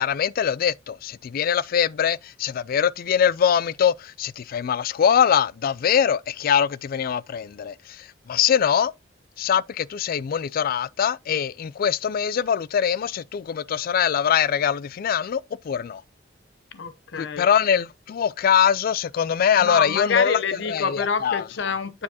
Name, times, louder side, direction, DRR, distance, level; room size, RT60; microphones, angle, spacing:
voice 1, 0.0-8.9 9.4-16.0 17.2-20.4 20.7-21.4, left 8 dB, 50° left, 0.3 m, -23 dB
voice 2, 16.7-17.5 19.6-22.0, left 5 dB, 70° left, 0.7 m, -27 dB
9.4 x 4.9 x 2.8 m
head